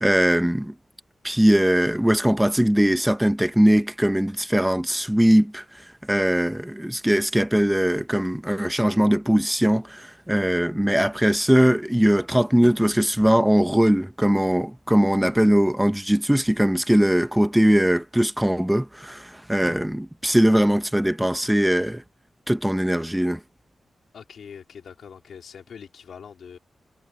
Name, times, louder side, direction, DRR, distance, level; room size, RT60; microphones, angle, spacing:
voice 1, 0.0-0.7 1.2-5.6 6.1-22.0 22.5-23.4, equal, 5° right, 0.8 m, -20 dB
voice 2, 24.1-26.6, left 7 dB, 80° left, 4.0 m, -43 dB
wide cardioid pair, 100°, 0 cm